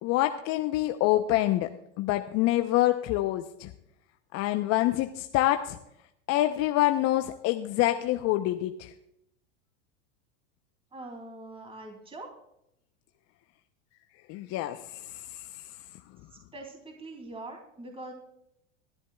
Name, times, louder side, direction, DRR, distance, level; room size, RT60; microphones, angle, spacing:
voice 1, 0.0-3.7 4.3-5.8 6.3-8.9 14.3-15.7, left 15 dB, 45° left, 7 dB, 0.8 m, -26 dB
voice 2, 10.9-12.3 16.3-18.1, right 2 dB, 15° right, 2 dB, 2.8 m, -43 dB
21.0 x 11.0 x 2.3 m, 0.79 s
hypercardioid pair, 100°, 36 cm